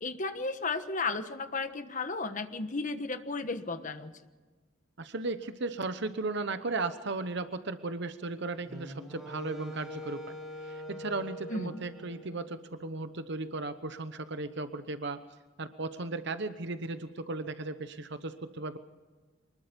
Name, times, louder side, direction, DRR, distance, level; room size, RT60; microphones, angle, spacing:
voice 1, 0.0-4.1 11.5-11.8, left 3 dB, 40° left, 9 dB, 1.3 m, -34 dB
voice 2, 5.0-10.4 10.6-15.2 15.6-18.8, right 3 dB, 60° right, 10 dB, 1.0 m, -36 dB
Wind instrument woodwind instrument, 8.7-12.9, equal, ahead, 7.0 m, -44 dB
24.5 x 20.5 x 5.3 m, 1.3 s
head